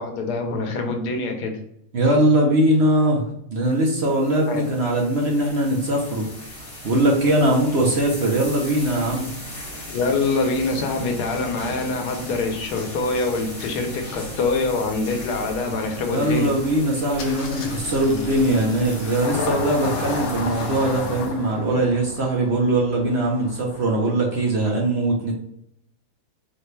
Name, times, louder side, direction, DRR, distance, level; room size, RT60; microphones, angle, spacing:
voice 1, 0.0-1.6 4.5-4.6 9.9-16.5, left 3 dB, 90° left, 3 dB, 1.3 m, -25 dB
voice 2, 1.9-3.2 3.5-6.3 6.8-9.3 16.1-25.3, right 1 dB, 55° right, -1 dB, 0.8 m, -21 dB
sound 1, 3.7-21.3, equal, 25° left, 0.9 m, -37 dB
Engine starting, 17.2-24.5, left 3 dB, 70° left, 1.1 m, -32 dB
4.2 x 2.2 x 3.1 m, 0.75 s
omnidirectional pair, 1.7 m